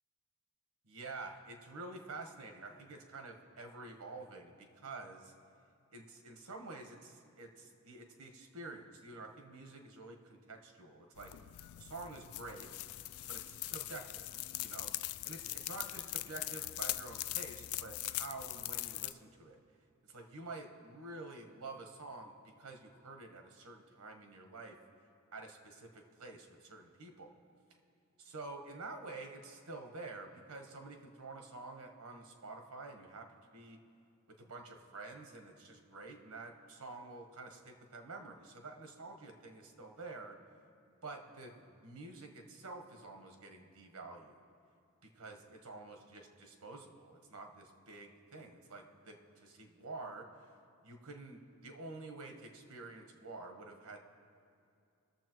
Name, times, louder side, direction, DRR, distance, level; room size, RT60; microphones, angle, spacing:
voice 1, 0.9-5.3 5.9-11.3 11.8-12.7 13.2-14.3 14.6-19.6 20.0-22.3 22.6-24.8 25.3-27.3 28.2-33.8 34.4-40.4 41.0-44.4 45.0-50.3 50.8-54.0, right 3 dB, 85° right, 4 dB, 1.2 m, -49 dB
sound 1, 11.2-19.1, left 16 dB, 80° left, 0.3 m, -41 dB
20.5 x 7.0 x 3.0 m, 2.6 s
head